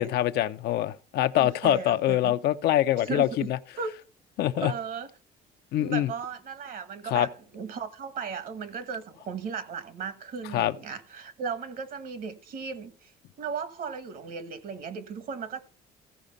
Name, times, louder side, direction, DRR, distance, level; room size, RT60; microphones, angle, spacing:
voice 1, 0.0-3.6 4.4-4.7 5.7-6.1 7.1-7.3 10.5-10.7, left 13 dB, 75° left, 0.6 m, -24 dB
voice 2, 1.3-2.3 3.0-3.9 4.6-5.1 5.8-13.1 13.4-15.6, right 6 dB, 55° right, 1.3 m, -36 dB
14.5 x 5.0 x 5.3 m
cardioid pair, 110°, 17 cm